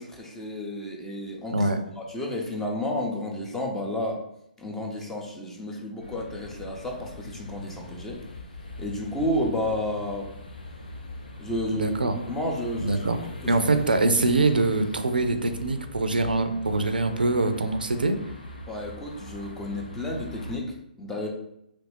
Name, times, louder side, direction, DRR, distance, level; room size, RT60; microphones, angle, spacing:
voice 1, 0.0-1.7 2.0-4.2 4.6-8.2 8.8-10.3 11.4-13.5 18.7-21.3, left 1 dB, 10° left, -1 dB, 0.6 m, -31 dB
sound 1, 6.0-20.6, left 2 dB, 80° left, 0.6 m, -42 dB
voice 2, 11.7-12.1 12.8-13.2 13.5-18.2, right 2 dB, 90° right, 9 dB, 0.4 m, -24 dB
3.1 x 2.4 x 3.2 m, 0.77 s
figure-of-eight pair, 135°, 5 cm